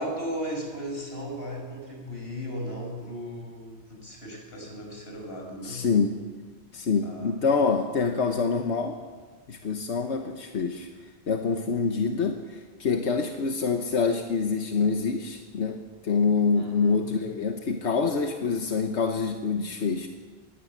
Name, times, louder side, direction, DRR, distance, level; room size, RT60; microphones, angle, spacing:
voice 1, 0.0-5.9 7.0-7.3 16.6-17.2, equal, 60° left, 1 dB, 5.7 m, -36 dB
voice 2, 5.6-6.2 6.7-9.0 9.5-20.1, left 5 dB, 85° left, 4 dB, 1.4 m, -26 dB
21.5 x 17.5 x 7.4 m, 1.5 s
omnidirectional pair, 1.1 m